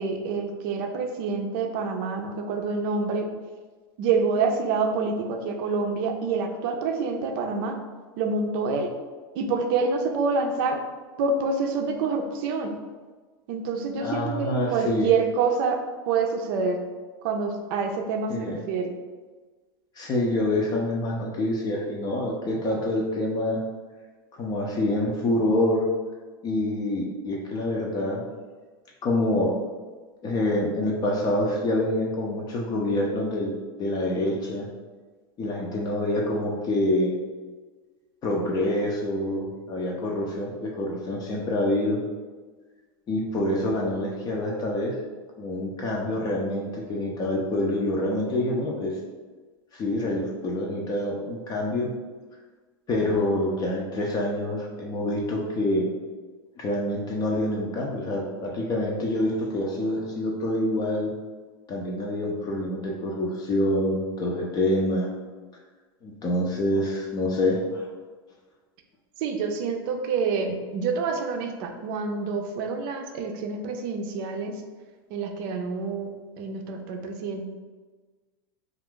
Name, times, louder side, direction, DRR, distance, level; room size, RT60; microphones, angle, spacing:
voice 1, 0.0-3.3 4.0-7.8 8.2-8.9 9.3-10.8 11.2-12.7 13.5-15.8 16.1-16.8 17.2-18.9 69.2-74.6 75.1-76.1 76.4-77.5, right 4 dB, 60° right, 4 dB, 0.5 m, -27 dB
voice 2, 14.0-15.1 18.3-18.6 20.0-23.6 24.4-25.9 26.4-28.2 29.0-29.5 30.2-33.5 33.8-34.7 35.4-37.1 38.2-42.0 43.1-45.0 45.4-49.0 49.7-51.9 52.9-55.9 56.6-61.1 61.7-65.1 66.0-67.8, left 1 dB, 30° left, -1 dB, 0.5 m, -26 dB
2.5 x 2.4 x 3.6 m, 1.4 s
supercardioid pair, 115°, 13 cm